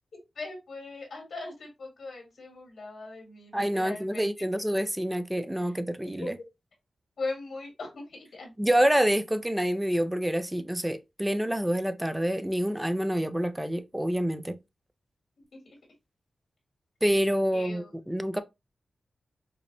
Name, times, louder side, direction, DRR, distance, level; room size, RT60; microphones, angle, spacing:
voice 1, 0.1-4.3 5.6-5.7 6.2-6.3 7.2-8.5 15.7-15.8 17.5-17.9, left 3 dB, 80° left, 1.6 m, -39 dB
voice 2, 3.5-6.3 8.6-14.6 17.0-18.4, equal, 10° right, 0.5 m, -27 dB
5.2 x 2.1 x 2.7 m
cardioid pair, 40°, 0 cm